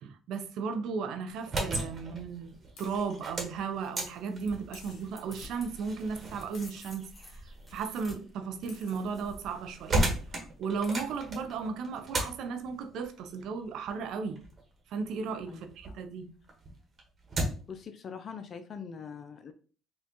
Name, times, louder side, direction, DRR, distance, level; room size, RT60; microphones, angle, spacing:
voice 1, 0.0-10.0 10.3-14.4 14.9-16.3, right 5 dB, 70° right, 0.5 m, -35 dB
sound 1, 1.3-16.0 16.4-17.8, right 1 dB, 40° right, 1.2 m, -37 dB
sound 2, 1.5-1.6 2.8-3.2 4.7-5.3 6.5-7.0 8.4-8.5 8.7-9.1, left 5 dB, 70° left, 0.9 m, -54 dB
sound 3, 4.1-5.7 6.1-9.4 10.8-11.4, left 2 dB, 15° left, 1.2 m, -52 dB
voice 2, 17.7-19.5, left 6 dB, 50° left, 0.4 m, -42 dB
4.3 x 2.4 x 2.9 m
hypercardioid pair, 65°, 0 cm